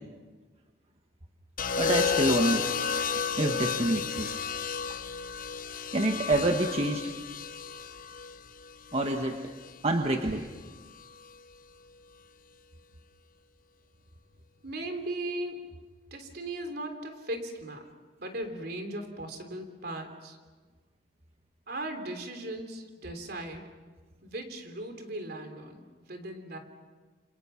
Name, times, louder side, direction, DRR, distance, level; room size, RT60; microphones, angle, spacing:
sound 1, 1.6-9.7 11.0-11.3, left 6 dB, 50° left, 0.9 m, -32 dB
voice 1, 1.8-2.7 3.4-4.4 5.9-7.1 8.9-9.5 9.8-10.4, right 1 dB, 35° right, 3 dB, 1.4 m, -27 dB
voice 2, 14.6-15.6 16.1-17.9 18.2-20.4 21.7-23.6 24.2-26.6, right 1 dB, 60° right, 6 dB, 3.4 m, -38 dB
28.5 x 26.5 x 5.9 m, 1.4 s
head